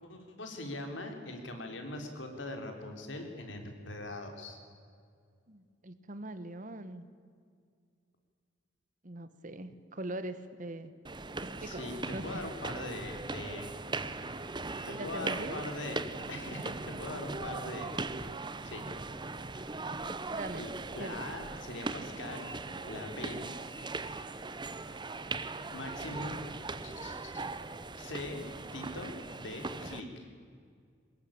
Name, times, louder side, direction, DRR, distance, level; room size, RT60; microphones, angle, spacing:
voice 1, 0.0-4.6 11.6-13.7 14.9-16.0 16.3-17.9 18.6-18.8 20.5-20.7 20.9-22.5 22.8-23.5 25.7-26.5 26.8-27.4 28.0-28.5 28.7-30.3, left 1 dB, 85° left, 4 dB, 3.9 m, -41 dB
voice 2, 5.5-7.1 9.0-10.9 11.4-12.5 13.2-13.3 14.9-15.6 20.3-20.7 21.0-21.2, right 1 dB, 45° right, 12 dB, 1.4 m, -42 dB
sound 1, 11.0-30.0, right 3 dB, 25° right, 0.9 m, -39 dB
23.5 x 20.5 x 8.8 m, 2.2 s
head